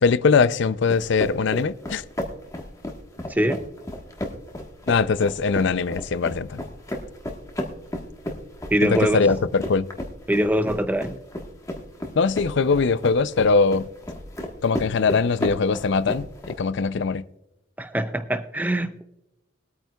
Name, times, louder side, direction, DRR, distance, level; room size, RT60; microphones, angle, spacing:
voice 1, 0.0-2.0 4.9-6.6 8.8-9.9 12.1-13.9 14.6-17.2, left 4 dB, 60° left, 0.5 m, -21 dB
Footsteps Mountain Boots Rock Sprint Sequence Mono, 0.9-16.6, left 1 dB, 15° left, 1.3 m, -34 dB
voice 2, 3.3-3.6 8.7-9.3 10.3-11.2 17.8-19.0, equal, 10° right, 0.4 m, -23 dB
22.0 x 8.9 x 2.3 m
head